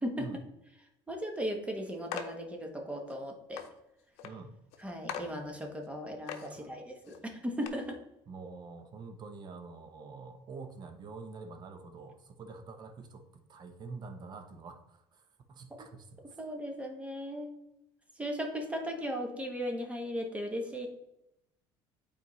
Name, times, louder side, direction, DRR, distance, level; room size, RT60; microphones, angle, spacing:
voice 1, 0.0-0.3 1.1-3.6 4.8-8.0 15.8-15.9 16.2-17.6 18.2-20.9, equal, 10° right, 3 dB, 1.0 m, -37 dB
sound 1, 2.1-2.4 3.1-3.2 3.6-3.7 4.2-4.3 4.7-4.8 5.1-5.3 5.8-5.9 6.3-6.5 7.0-7.2 7.6-7.7, left 8 dB, 75° left, 0.7 m, -40 dB
voice 2, 4.2-4.5 6.5-6.8 8.3-16.2, right 4 dB, 40° right, 7 dB, 0.8 m, -46 dB
8.3 x 4.2 x 3.1 m, 0.85 s
cardioid pair, 110°, 11 cm